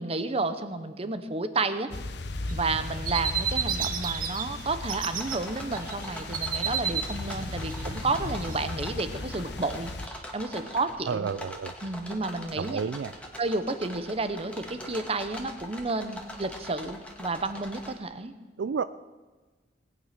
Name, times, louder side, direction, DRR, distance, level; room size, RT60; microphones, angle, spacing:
voice 1, 0.0-1.9 2.5-11.3 11.8-12.8 13.4-18.3, right 3 dB, 35° right, 11 dB, 0.9 m, -31 dB
sound 1, 1.9-10.1, left 2 dB, 65° left, 0.9 m, -37 dB
sound 2, 2.5-4.4 4.7-5.4 5.7-8.6, right 7 dB, 50° right, 1.2 m, -31 dB
sound 3, 4.8-17.9, left 1 dB, 5° left, 1.8 m, -43 dB
voice 2, 11.1-11.7 12.6-13.1 18.6-18.8, right 6 dB, 80° right, 14 dB, 0.4 m, -30 dB
19.0 x 9.1 x 5.9 m, 1.3 s
head